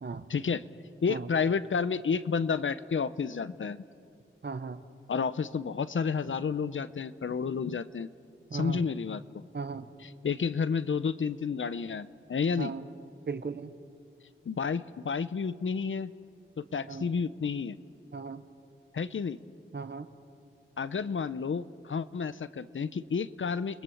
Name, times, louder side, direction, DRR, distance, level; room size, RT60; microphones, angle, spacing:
voice 1, 0.3-0.6 1.0-3.8 5.1-8.1 8.5-9.4 10.2-12.7 14.5-16.1 16.6-17.8 18.9-19.4 20.8-23.8, left 5 dB, 70° left, 15 dB, 0.8 m, -31 dB
voice 2, 4.4-4.8 8.5-8.8 9.5-9.9 12.6-12.9 13.3-13.7 16.8-17.1 18.1-18.4 19.7-20.1, right 4 dB, 55° right, 11 dB, 1.3 m, -36 dB
29.5 x 21.0 x 7.2 m, 2.6 s
wide cardioid pair, 85°, 21 cm